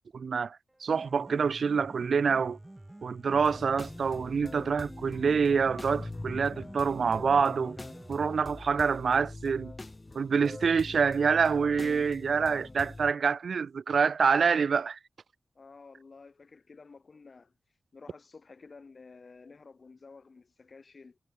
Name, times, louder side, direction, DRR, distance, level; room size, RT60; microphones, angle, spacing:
voice 1, 0.1-2.6 3.0-7.8 8.1-9.7 10.1-15.0, right 5 dB, 75° right, 0.4 m, -26 dB
Piano, 0.7-8.7, right 1 dB, 15° right, 2.1 m, -49 dB
sound 1, 3.3-13.1, left 2 dB, 25° left, 3.9 m, -43 dB
voice 2, 15.5-17.5 17.9-21.2, left 4 dB, 55° left, 4.1 m, -52 dB
wide cardioid pair, 75°, 0 cm